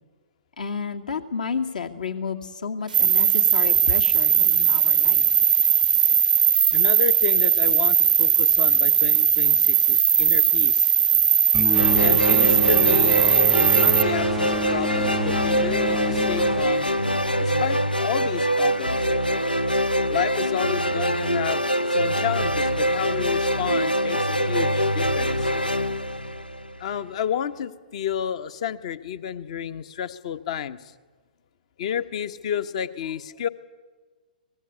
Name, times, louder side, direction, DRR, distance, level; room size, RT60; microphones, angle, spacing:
voice 1, 0.6-5.3, left 5 dB, 65° left, 5 dB, 2.4 m, -31 dB
sound 1, 2.9-14.0, right 8 dB, 65° right, 0.7 m, -19 dB
voice 2, 6.7-10.9 12.0-13.3 13.6-16.9 17.4-19.1 20.1-25.5 26.8-30.9 31.8-33.5, left 9 dB, 45° left, 13 dB, 1.2 m, -31 dB
sound 2, 11.5-17.6, equal, ahead, 0.6 m, -30 dB
sound 3, 11.7-27.0, equal, 90° left, 0.9 m, -24 dB
24.5 x 19.5 x 8.4 m, 1.4 s
figure-of-eight pair, 120°, 5 cm